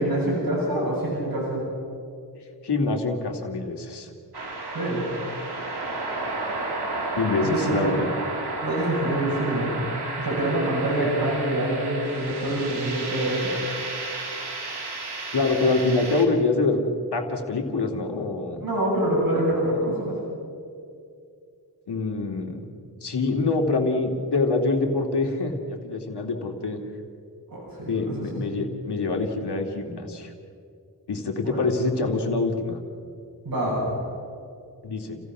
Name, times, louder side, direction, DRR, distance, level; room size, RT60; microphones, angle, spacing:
voice 1, 0.0-1.6 4.7-5.1 7.4-7.9 8.6-9.9 10.2-13.5 18.6-20.2 27.5-28.4 31.4-31.7 33.4-34.0, right 1 dB, 60° right, -5 dB, 7.3 m, -26 dB
voice 2, 2.6-4.1 7.1-8.1 15.3-16.8 17.1-18.6 21.9-22.7 23.0-26.8 27.9-30.3 31.1-32.8 34.8-35.2, left 3 dB, 90° left, 2 dB, 2.5 m, -25 dB
sound 1, 4.3-16.3, right 2 dB, 85° right, 3.2 m, -32 dB
29.5 x 16.0 x 6.1 m, 2.4 s
wide cardioid pair, 80°, 39 cm